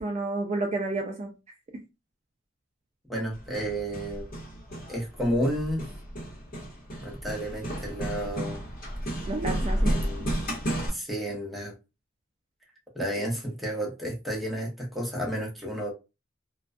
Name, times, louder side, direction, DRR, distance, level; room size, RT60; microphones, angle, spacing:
voice 1, 0.0-1.3 9.3-10.0, right 2 dB, 35° right, 0.3 m, -30 dB
voice 2, 3.1-4.3 4.9-5.8 7.0-8.6 9.8-10.3 10.7-11.8 12.9-15.9, equal, ahead, 0.8 m, -31 dB
Hammer, 3.3-10.9, right 1 dB, 45° left, 0.9 m, -32 dB
2.2 x 2.2 x 2.5 m
head